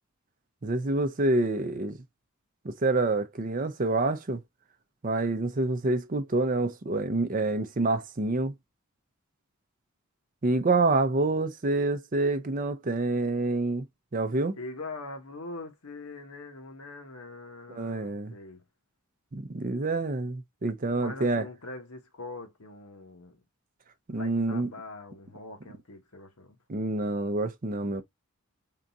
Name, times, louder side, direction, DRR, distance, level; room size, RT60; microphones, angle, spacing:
voice 1, 0.6-2.0 2.6-4.4 5.0-8.5 10.4-13.9 14.1-14.6 17.7-18.3 19.3-21.5 24.1-24.7 26.7-28.0, right 2 dB, 40° right, 0.5 m, -27 dB
voice 2, 14.5-18.6 21.0-23.4 24.1-26.6, left 2 dB, 80° left, 1.1 m, -43 dB
3.7 x 2.4 x 4.0 m
head